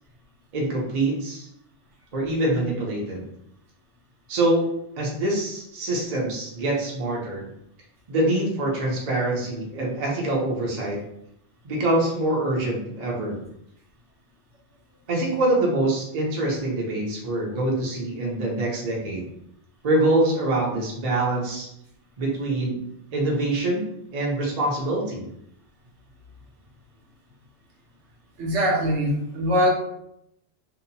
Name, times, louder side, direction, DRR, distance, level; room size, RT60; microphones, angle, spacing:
voice 1, 0.5-1.5 2.1-3.2 4.3-4.7 5.0-7.4 8.1-11.0 11.6-13.4 15.1-19.3 19.8-21.7 22.2-22.8 23.1-23.8 24.1-25.3, right 1 dB, 40° right, -3 dB, 0.6 m, -24 dB
voice 2, 28.4-29.7, equal, 80° right, -3 dB, 1.1 m, -22 dB
2.8 x 2.1 x 2.6 m, 0.76 s
omnidirectional pair, 1.2 m